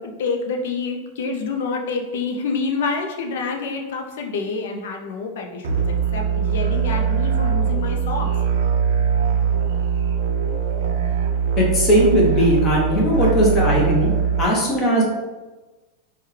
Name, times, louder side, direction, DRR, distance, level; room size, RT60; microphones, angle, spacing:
voice 1, 0.0-8.3, left 4 dB, 65° left, 3 dB, 0.5 m, -27 dB
sound 1, 5.6-14.4, right 7 dB, 85° right, 0.4 m, -21 dB
voice 2, 11.6-14.1 14.4-15.0, equal, 20° left, -3 dB, 0.7 m, -18 dB
3.4 x 2.2 x 3.1 m, 1.2 s
supercardioid pair, 175°, 0 cm